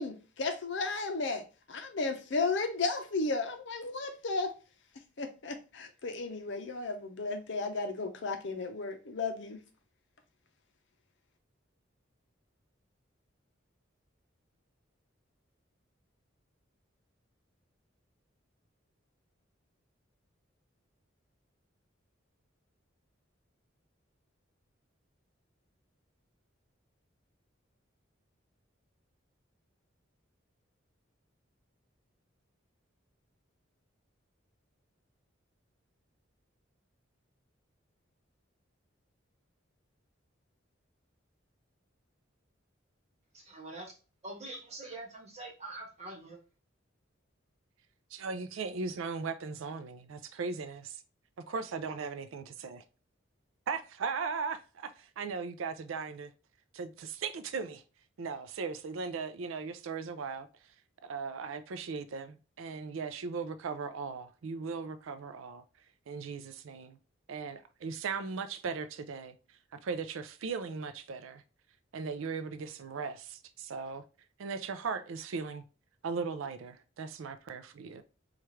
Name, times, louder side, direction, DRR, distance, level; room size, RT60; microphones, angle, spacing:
voice 1, 0.0-4.5 5.2-9.6, left 3 dB, 60° left, 0.7 m, -34 dB
voice 2, 43.3-44.0 44.2-46.4, right 2 dB, 35° right, 1.2 m, -44 dB
voice 3, 48.1-51.0 51.5-52.8 53.7-56.3 56.7-57.8 58.2-60.5 61.0-65.6 66.1-67.0 67.3-69.3 69.8-71.4 71.9-74.0 74.4-75.6 76.0-78.0, right 5 dB, 85° right, 0.4 m, -38 dB
4.4 x 2.4 x 3.1 m
head